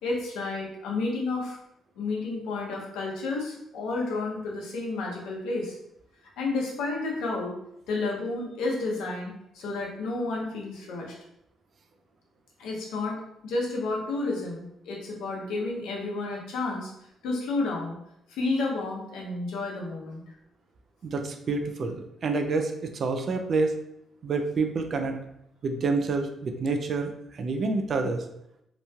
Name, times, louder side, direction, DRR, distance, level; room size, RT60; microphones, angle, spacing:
voice 1, 0.0-1.6 2.0-5.8 6.4-7.5 7.9-11.1 12.6-13.2 13.4-16.9 17.2-18.0 18.3-20.2, left 3 dB, 90° left, -2 dB, 0.8 m, -31 dB
voice 2, 21.0-23.7 24.2-25.2 25.6-28.2, right 3 dB, 50° right, 6 dB, 0.3 m, -28 dB
2.9 x 2.2 x 2.7 m, 0.78 s
cardioid pair, 90°, 0 cm